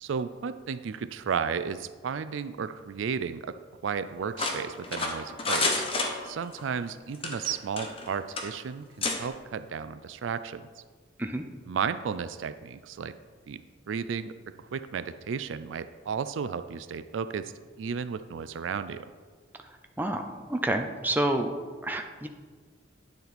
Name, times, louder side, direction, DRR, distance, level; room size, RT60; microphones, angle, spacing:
voice 1, 0.0-5.8 6.2-10.7 11.7-13.1 13.5-13.6 13.9-14.3 14.7-17.5 17.8-19.1, right 6 dB, 75° right, 13 dB, 0.4 m, -33 dB
sound 1, 4.4-6.6 7.1-8.1 8.4-8.5 9.0-9.2, left 3 dB, 30° left, 0.9 m, -29 dB
voice 2, 20.0-21.5 21.8-22.3, right 1 dB, 10° right, 5 dB, 0.5 m, -29 dB
9.5 x 6.8 x 4.2 m, 1.5 s
head